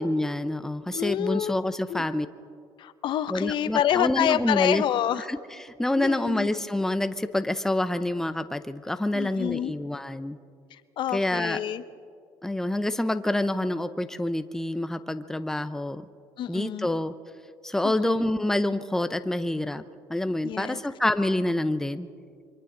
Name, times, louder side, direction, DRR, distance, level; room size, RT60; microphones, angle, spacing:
voice 1, 0.0-2.3 3.3-4.8 5.3-5.4 5.6-10.4 11.1-11.6 12.4-16.0 16.5-17.1 17.6-19.8 20.1-22.1, left 1 dB, 5° left, 11 dB, 0.7 m, -27 dB
voice 2, 0.9-1.5 1.9-2.1 2.8-5.3 5.9-6.5 9.1-9.7 10.7-11.8 16.4-16.9 17.8-18.3 20.4-20.8, left 11 dB, 60° left, 13 dB, 0.7 m, -28 dB
28.0 x 24.0 x 3.9 m, 2.2 s
cardioid pair, 100°, 10 cm